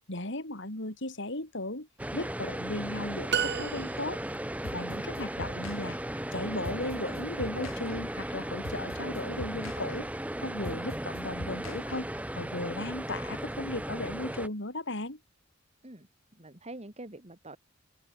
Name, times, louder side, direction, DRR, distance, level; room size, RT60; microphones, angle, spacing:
voice 1, 0.1-4.2 4.7-5.9 6.3-10.1 10.4-12.1 12.3-15.2, left 2 dB, 60° left, 5.1 m, -36 dB
sound 1, 2.0-14.5, right 1 dB, 5° right, 1.8 m, -36 dB
sound 2, 3.3-4.4, right 8 dB, 55° right, 1.1 m, -32 dB
sound 3, 4.6-12.4, left 1 dB, 75° left, 7.7 m, -43 dB
voice 2, 4.9-5.7 10.6-10.8 15.8-17.6, right 1 dB, 30° right, 2.9 m, -46 dB
open air
head